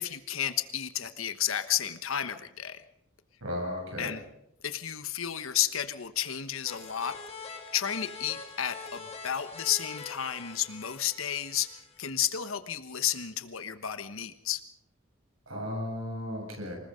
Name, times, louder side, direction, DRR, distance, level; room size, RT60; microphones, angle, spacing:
voice 1, 0.0-2.8 4.0-4.2 4.6-11.7 12.0-14.6, left 10 dB, 85° left, 10 dB, 1.3 m, -32 dB
voice 2, 3.4-4.1 15.5-16.8, left 1 dB, 90° right, 1 dB, 7.9 m, -35 dB
sound 1, 6.6-12.0, left 4 dB, 30° left, 2.9 m, -44 dB
25.5 x 20.5 x 5.2 m, 0.77 s
head